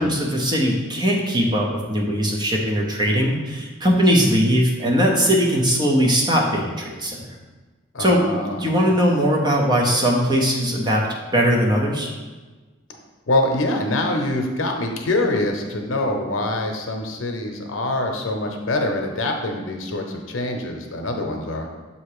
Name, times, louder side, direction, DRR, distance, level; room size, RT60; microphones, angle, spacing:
voice 1, 0.0-7.3 8.0-11.1 11.3-12.1, equal, 20° right, -1 dB, 0.7 m, -20 dB
voice 2, 7.9-8.7 13.3-21.7, left 1 dB, 80° left, 3 dB, 0.8 m, -24 dB
7.2 x 2.9 x 4.8 m, 1.3 s
head